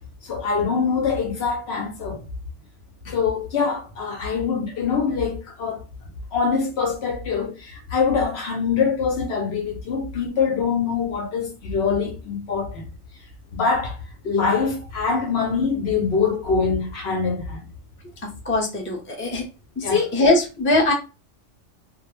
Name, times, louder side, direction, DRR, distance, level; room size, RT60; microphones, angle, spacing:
voice 1, 0.2-2.2 3.1-5.8 6.3-12.8 13.5-14.0 14.2-17.6 19.8-20.0, left 5 dB, 65° left, 0.8 m, -24 dB
voice 2, 18.2-19.5 19.8-20.9, left 2 dB, 15° left, 0.5 m, -21 dB
2.3 x 2.0 x 3.0 m
omnidirectional pair, 1.3 m